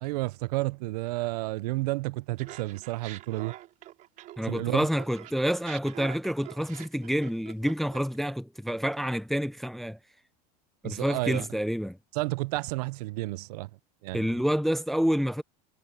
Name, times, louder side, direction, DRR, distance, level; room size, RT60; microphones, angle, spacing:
voice 1, 0.0-3.5 4.5-4.9 10.8-11.4 12.2-13.7 14.0-14.3, right 20 dB, 75° right, 0.5 m, -31 dB
Laughter, 2.4-4.6 4.9-8.2, right 14 dB, 40° right, 3.4 m, -45 dB
voice 2, 4.4-10.0 10.8-12.0 14.1-15.4, equal, ahead, 0.4 m, -28 dB
supercardioid pair, 150°, 20 cm